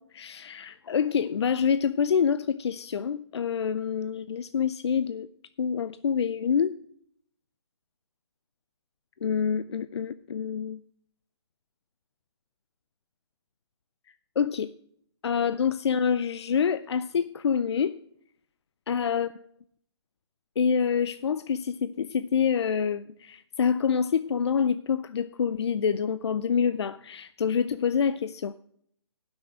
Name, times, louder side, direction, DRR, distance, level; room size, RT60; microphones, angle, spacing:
voice 1, 0.0-5.3 5.6-6.7 9.2-10.8 14.1-14.7 15.2-18.0 18.9-19.3 20.6-28.6, left 7 dB, 70° left, 0.5 m, -27 dB
10.5 x 6.3 x 7.3 m
hypercardioid pair, 160°, 15 cm